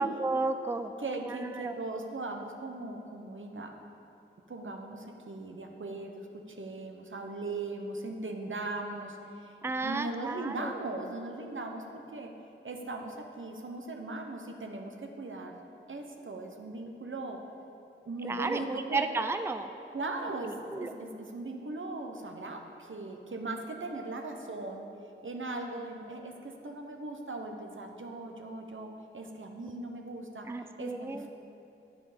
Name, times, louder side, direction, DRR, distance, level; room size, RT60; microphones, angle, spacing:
voice 1, 0.0-0.9 1.3-1.7 9.6-10.7 18.2-19.7 20.5-20.9 30.5-31.3, right 3 dB, 10° right, 8 dB, 0.4 m, -33 dB
voice 2, 1.0-3.7 4.5-12.3 12.6-15.6 15.9-17.4 18.0-19.1 19.9-24.9 25.2-30.5 30.8-31.3, right 2 dB, 70° right, 3 dB, 1.0 m, -39 dB
9.5 x 8.4 x 5.1 m, 2.7 s
wide cardioid pair, 50°, 21 cm